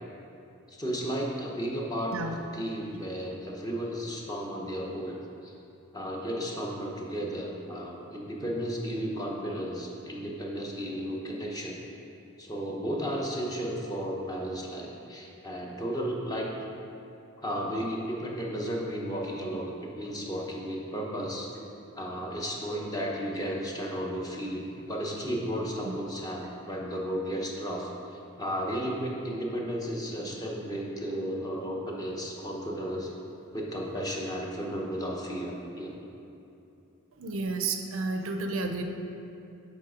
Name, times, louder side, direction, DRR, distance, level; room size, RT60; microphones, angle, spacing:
voice 1, 0.7-5.2 5.4-5.5 5.9-11.8 12.4-16.5 17.4-21.6 21.9-27.9 28.4-33.1 33.5-35.9, equal, 20° left, -2 dB, 0.8 m, -34 dB
voice 2, 37.2-38.8, right 3 dB, 70° right, 5 dB, 0.5 m, -31 dB
7.4 x 4.1 x 4.9 m, 2.8 s
head